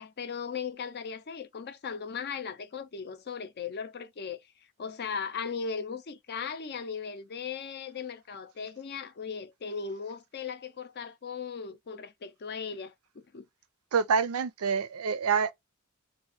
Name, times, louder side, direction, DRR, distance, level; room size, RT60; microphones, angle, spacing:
voice 1, 0.0-4.4 4.8-13.5, left 6 dB, 50° left, 0.5 m, -37 dB
voice 2, 13.9-15.5, right 6 dB, 90° right, 0.5 m, -26 dB
2.8 x 2.5 x 4.2 m
head